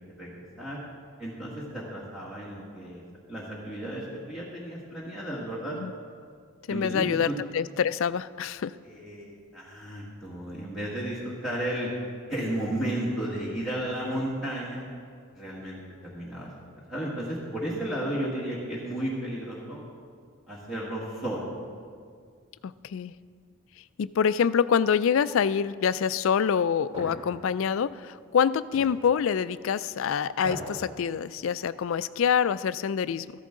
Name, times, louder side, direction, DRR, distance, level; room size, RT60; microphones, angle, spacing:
voice 1, 0.2-0.8 1.2-3.0 3.3-5.8 6.7-7.3 8.8-11.9 12.3-14.8 15.3-16.5 16.9-19.8 20.5-21.5, right 1 dB, ahead, -8 dB, 1.7 m, -33 dB
voice 2, 6.7-8.8 22.6-23.1 24.0-33.3, left 7 dB, 65° left, 16 dB, 0.3 m, -26 dB
sound 1, 26.9-27.2 28.7-28.9 30.3-30.8 31.2-31.3, equal, 25° right, 4.1 m, -37 dB
14.5 x 13.5 x 3.7 m, 2.1 s
head